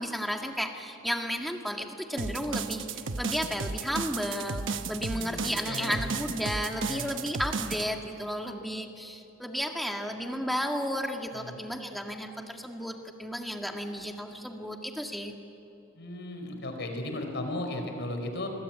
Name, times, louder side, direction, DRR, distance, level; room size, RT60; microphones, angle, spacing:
voice 1, 0.0-2.8 3.2-15.3, equal, ahead, 3 dB, 1.9 m, -33 dB
sound 1, 2.2-7.8, right 4 dB, 65° right, 1.0 m, -34 dB
voice 2, 5.1-6.1 6.8-7.1 11.3-11.6 15.9-18.5, left 1 dB, 60° left, 4 dB, 4.7 m, -36 dB
25.5 x 22.0 x 9.1 m, 2.9 s
head